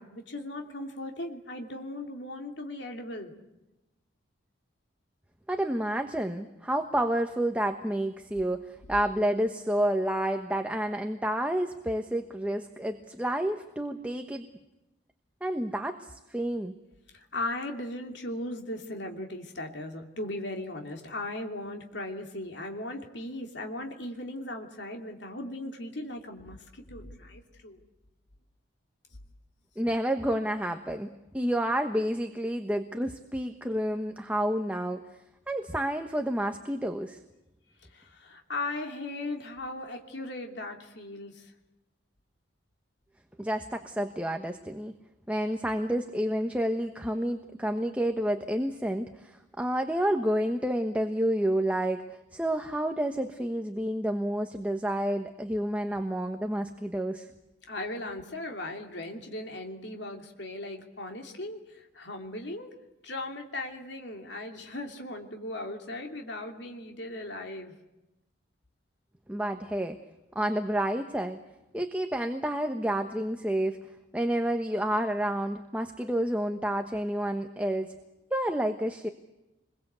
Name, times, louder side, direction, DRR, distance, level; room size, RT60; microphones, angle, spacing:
voice 1, 0.0-3.3 17.1-27.8 37.8-41.5 57.7-62.7 63.0-67.7, left 2 dB, 65° left, 3 dB, 3.0 m, -38 dB
voice 2, 5.5-14.5 15.4-16.7 29.8-35.0 35.5-37.2 43.4-44.9 45.3-52.0 52.3-57.3 69.3-70.0 70.3-71.4 71.7-73.8 74.1-77.9 78.3-79.1, right 1 dB, 5° right, 5 dB, 1.2 m, -29 dB
28.0 x 22.5 x 8.2 m, 0.97 s
head